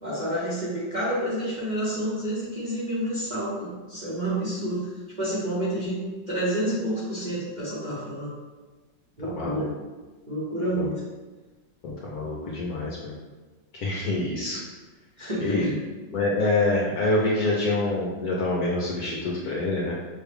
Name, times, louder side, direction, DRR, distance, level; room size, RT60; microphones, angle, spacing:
voice 1, 0.0-4.9 5.2-8.3 9.2-9.7 10.3-11.0 15.2-15.8, right 1 dB, 30° right, -9 dB, 1.0 m, -29 dB
voice 2, 9.3-9.7 10.8-10.9 11.8-13.1 13.7-14.6 15.4-15.7 16.1-20.0, left 2 dB, 65° left, -4 dB, 1.0 m, -26 dB
6.2 x 2.3 x 3.5 m, 1.2 s
omnidirectional pair, 2.1 m